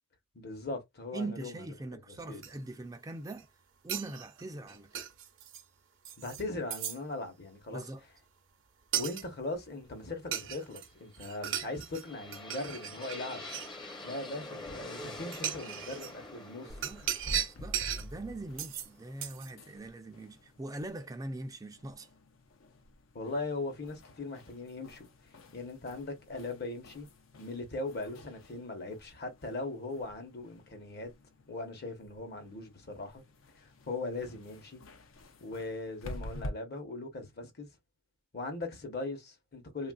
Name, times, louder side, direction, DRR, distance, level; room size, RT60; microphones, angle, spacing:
voice 1, 0.3-1.6 2.3-2.4 6.2-7.8 8.9-13.5 14.0-16.8 23.1-25.1 25.5-27.1 27.4-31.1 31.5-33.2 33.6-34.8 35.4-37.7 38.3-39.9, left 2 dB, 55° left, 0.9 m, -39 dB
voice 2, 1.1-3.5 3.8-5.0 7.7-8.0 16.6-22.1, right 2 dB, 20° right, 0.3 m, -42 dB
sound 1, 2.4-2.5 3.1-3.4 3.9-5.6 6.0-6.4 6.7-7.0 8.9-9.2 10.3-10.9 11.1-12.0 12.3-13.7 14.7-14.8 15.3-16.1 16.8-18.1 18.6-18.9 19.2-19.5, right 10 dB, 70° right, 0.6 m, -36 dB
sound 2, 11.4-19.3, left 2 dB, 25° left, 0.6 m, -46 dB
sound 3, 16.7-36.5, left 1 dB, 75° left, 0.6 m, -49 dB
3.3 x 2.4 x 2.3 m
head